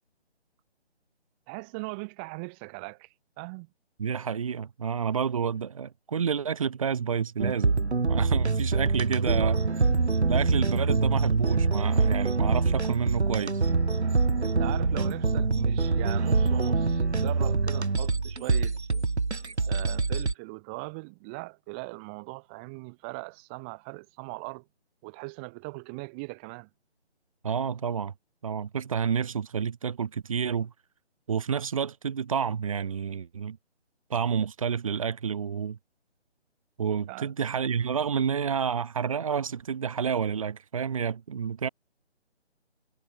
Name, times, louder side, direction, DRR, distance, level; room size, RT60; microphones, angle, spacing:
voice 1, 1.5-3.7 9.3-9.6 14.4-18.7 19.7-24.7 25.0-26.7 37.1-37.3, right 31 dB, 10° right, 3.8 m, -40 dB
voice 2, 4.0-7.8 8.1-9.6 10.3-13.6 27.4-28.1 28.4-30.7 31.3-33.6 34.1-35.8 36.8-41.7, right 7 dB, 30° right, 6.4 m, -29 dB
sound 1, 7.4-20.3, right 4 dB, 75° right, 4.8 m, -25 dB
hypercardioid pair, 175°, 34 cm